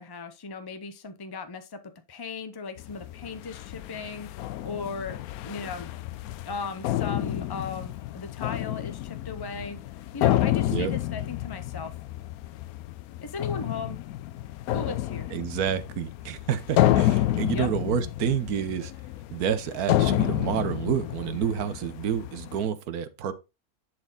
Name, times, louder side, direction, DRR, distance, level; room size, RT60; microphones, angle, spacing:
voice 1, 0.0-1.8 2.1-4.3 4.6-5.2 5.4-5.9 6.5-11.9 13.2-14.0 14.7-15.3 17.5-17.7, left 4 dB, 40° left, 0.3 m, -37 dB
sound 1, 2.8-22.7, left 13 dB, 80° left, 1.0 m, -29 dB
voice 2, 15.3-18.9 19.3-23.3, right 8 dB, 85° right, 1.3 m, -29 dB
10.5 x 4.3 x 3.8 m
omnidirectional pair, 1.6 m